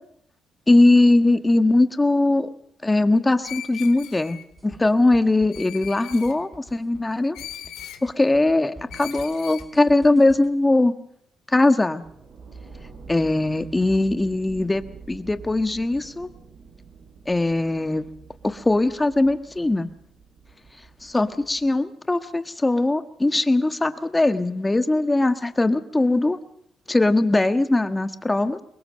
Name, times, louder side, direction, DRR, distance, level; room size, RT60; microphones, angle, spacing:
voice 1, 0.7-2.5 2.8-4.4 4.6-7.4 8.0-10.9 11.5-12.0 13.1-14.8 15.1-16.3 17.3-18.0 18.4-19.9 21.0-26.4 26.9-28.6, left 2 dB, 15° left, 10 dB, 1.4 m, -20 dB
Screech, 3.4-4.5 5.5-6.4 7.3-8.0 8.9-9.7, left 11 dB, 85° left, 2.1 m, -39 dB
sound 1, 4.5-10.5, right 2 dB, 5° right, 4.4 m, -47 dB
sound 2, 12.0-21.8, right 5 dB, 55° right, 6.8 m, -46 dB
24.0 x 20.5 x 6.4 m, 0.71 s
cardioid pair, 90°, 0 cm